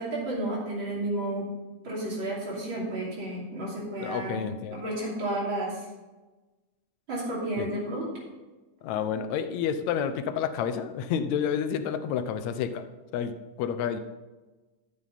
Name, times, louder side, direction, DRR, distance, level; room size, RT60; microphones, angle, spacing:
voice 1, 0.0-1.5 1.8-5.8 7.1-8.1, right 1 dB, 40° right, -4 dB, 3.5 m, -32 dB
voice 2, 4.0-5.0 7.6-7.7 8.8-12.8 13.1-13.3 13.6-14.0, left 8 dB, 75° left, 10 dB, 2.0 m, -29 dB
13.0 x 7.6 x 4.1 m, 1.2 s
omnidirectional pair, 3.4 m